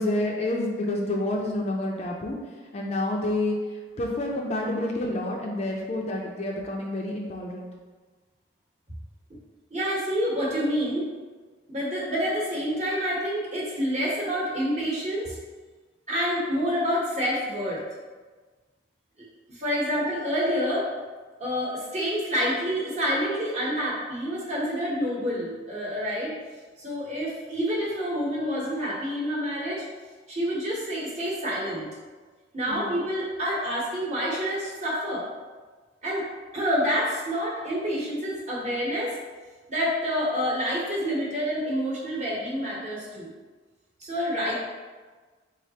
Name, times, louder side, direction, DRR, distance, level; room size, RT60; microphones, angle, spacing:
voice 1, 0.0-2.4 2.7-3.6 4.0-7.7 32.7-32.9, left 1 dB, 35° left, 0 dB, 0.4 m, -28 dB
voice 2, 9.7-11.1 11.7-15.3 16.1-17.8 19.5-20.9 21.4-26.3 26.8-29.8 30.3-31.9 32.5-35.3 36.0-36.3 36.5-39.1 39.7-43.3 44.0-44.5, equal, 35° right, -5 dB, 0.9 m, -28 dB
3.9 x 3.2 x 2.8 m, 1.4 s
head